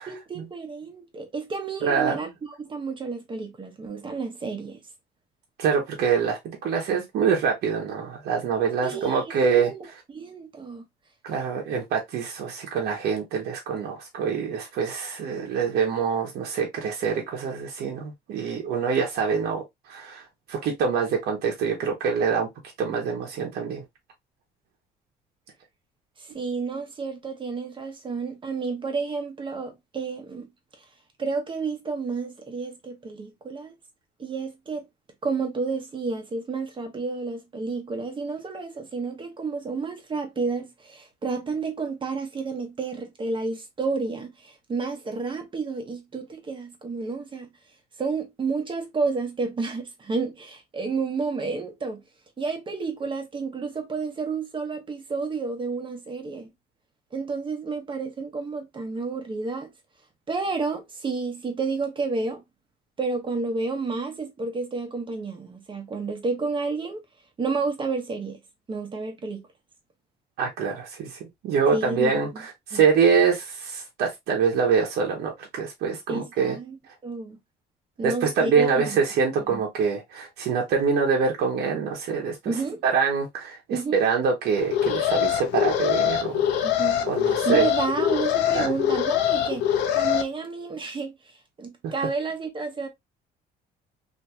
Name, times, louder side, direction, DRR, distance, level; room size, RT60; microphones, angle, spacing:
voice 1, 0.1-4.8 8.8-9.9 10.1-10.8 26.2-30.5 31.2-33.8 34.2-34.9 35.2-47.5 48.0-52.0 52.4-56.5 57.1-59.7 60.3-62.4 63.0-67.0 67.4-68.4 68.7-69.4 71.7-72.4 72.7-72.8 76.1-77.4 78.0-79.0 79.5-79.6 82.4-82.8 83.7-84.0 86.6-92.9, right 4 dB, 30° right, 0.9 m, -31 dB
voice 2, 1.8-2.2 5.6-9.7 11.2-19.6 19.9-20.2 20.5-22.5 22.8-23.8 70.4-76.6 78.0-82.5 82.8-86.5 87.1-87.7 88.5-88.7 92.0-92.1, right 6 dB, 70° right, 0.9 m, -25 dB
Alarm, 84.6-90.2, left 10 dB, 85° left, 0.5 m, -24 dB
2.8 x 2.7 x 2.3 m
cardioid pair, 110°, 17 cm